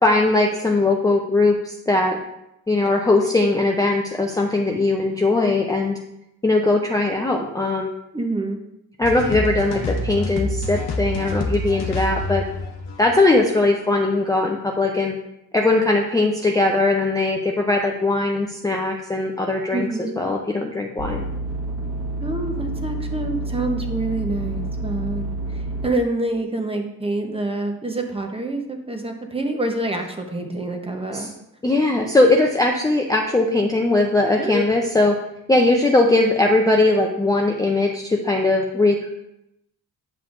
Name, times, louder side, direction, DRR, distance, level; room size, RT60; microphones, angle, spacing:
voice 1, 0.0-2.2 2.7-6.0 6.4-7.9 9.0-12.4 13.0-15.1 15.5-19.9 20.2-21.2 31.1-31.3 31.6-35.2 35.5-39.1, left 2 dB, 10° left, 1 dB, 0.5 m, -20 dB
voice 2, 8.1-8.6 19.7-20.1 22.2-31.3 34.4-34.6, right 2 dB, 15° right, 3 dB, 0.9 m, -27 dB
sound 1, 9.0-14.0, left 1 dB, 80° left, 0.9 m, -27 dB
sound 2, 21.0-25.9, right 2 dB, 35° right, 1.5 m, -28 dB
8.8 x 5.6 x 2.5 m, 0.83 s
cardioid pair, 105°, 39 cm